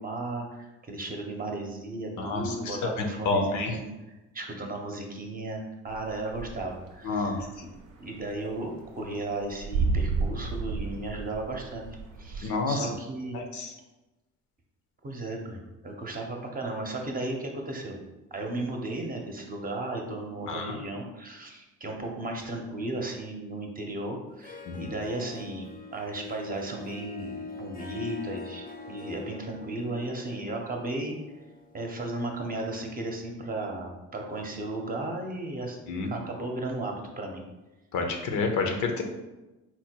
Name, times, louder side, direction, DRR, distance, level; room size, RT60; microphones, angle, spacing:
voice 1, 0.0-3.8 4.3-7.7 8.0-11.8 12.2-13.4 15.0-18.0 18.3-31.2 31.7-35.8 36.0-37.5, right 2 dB, 30° right, 1 dB, 0.8 m, -35 dB
voice 2, 2.2-2.8 3.2-3.8 7.0-7.4 12.4-12.9 13.3-13.7 20.5-20.7 24.7-24.9 35.9-36.1 37.9-39.0, left 3 dB, 70° left, 4 dB, 0.7 m, -29 dB
sound 1, 5.9-6.9 7.2-12.4, right 4 dB, 85° right, 0.7 m, -31 dB
Harp, 24.3-32.9, left 4 dB, 30° left, 0.6 m, -43 dB
4.3 x 2.2 x 4.4 m, 1.0 s
cardioid pair, 90°, 30 cm